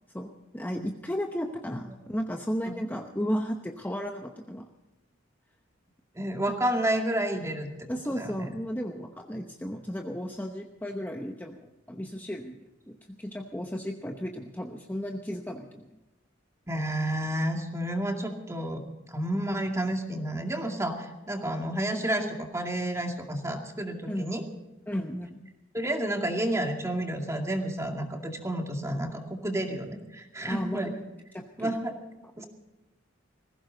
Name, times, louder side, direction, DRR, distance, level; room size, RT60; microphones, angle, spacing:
voice 1, 0.1-4.6 7.9-12.6 12.9-15.9 24.1-24.3 24.9-25.5 30.5-30.9 31.3-31.7 32.4-32.5, equal, 10° left, 3 dB, 0.9 m, -34 dB
voice 2, 6.1-7.7 8.1-8.5 16.7-24.4 25.7-30.9 31.6-31.9 32.4-32.5, right 1 dB, 15° right, 3 dB, 2.3 m, -30 dB
19.5 x 16.5 x 4.0 m, 1.0 s
head